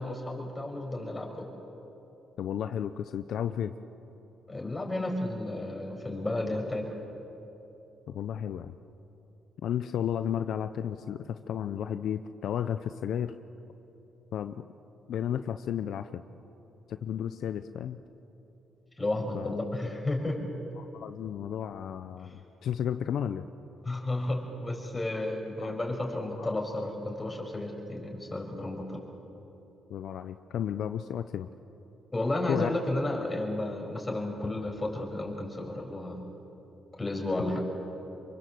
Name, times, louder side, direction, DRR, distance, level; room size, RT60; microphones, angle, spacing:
voice 1, 0.0-1.5 4.5-6.9 19.0-20.4 22.2-22.4 23.8-29.0 32.1-36.2 37.0-37.6, left 1 dB, 20° left, 2 dB, 6.1 m, -32 dB
voice 2, 2.4-3.7 8.1-8.7 9.6-13.3 14.3-14.6 15.1-16.1 16.9-18.0 19.3-19.5 20.8-23.4 25.6-25.7 26.4-26.5 29.9-31.5 32.5-32.7, left 9 dB, 70° left, 10 dB, 0.8 m, -33 dB
27.5 x 23.5 x 7.9 m, 3.0 s
cardioid pair, 90°, 0 cm